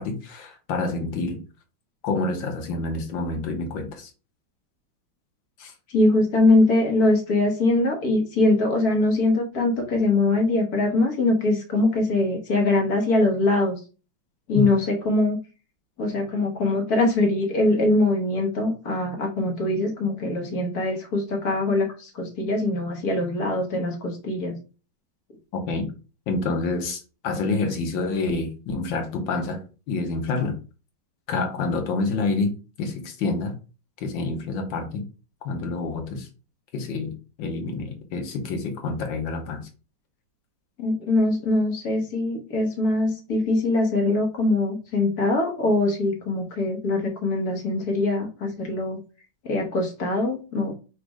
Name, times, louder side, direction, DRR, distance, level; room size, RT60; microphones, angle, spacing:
voice 1, 0.0-1.4 2.0-4.1 5.6-5.7 14.5-14.6 25.5-25.9 26.3-30.6 31.3-33.5 34.0-35.0 35.4-36.3 36.7-39.7, left 3 dB, 70° left, 4 dB, 1.6 m, -28 dB
voice 2, 5.9-13.8 14.5-15.4 16.0-24.5 40.8-49.0 49.4-50.7, left 2 dB, 50° left, 2 dB, 1.5 m, -22 dB
4.2 x 2.5 x 4.7 m, 0.33 s
omnidirectional pair, 2.2 m